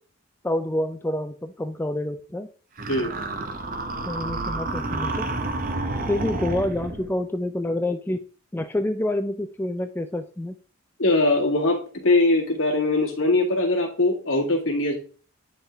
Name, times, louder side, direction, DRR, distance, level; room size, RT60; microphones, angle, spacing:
voice 1, 0.4-2.5 4.0-5.3 6.0-8.2 8.5-10.5, left 1 dB, 10° left, 6 dB, 0.3 m, -27 dB
sound 1, 2.8-7.1, right 2 dB, 40° right, 0.8 m, -29 dB
voice 2, 11.0-14.9, left 2 dB, 65° left, -1 dB, 2.0 m, -21 dB
9.6 x 3.6 x 3.4 m, 0.40 s
head